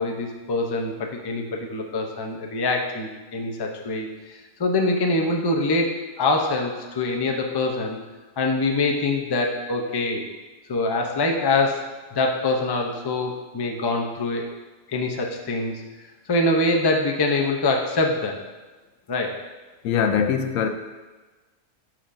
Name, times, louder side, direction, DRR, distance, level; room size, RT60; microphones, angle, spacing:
voice 1, 0.0-8.0 8.4-10.2 10.7-11.8 12.1-14.5 14.9-15.8 16.3-18.4 19.1-19.4, left 2 dB, 30° left, 2 dB, 0.4 m, -24 dB
voice 2, 19.8-20.7, left 7 dB, 90° left, 7 dB, 1.0 m, -22 dB
12.0 x 4.3 x 2.6 m, 1.2 s
omnidirectional pair, 1.4 m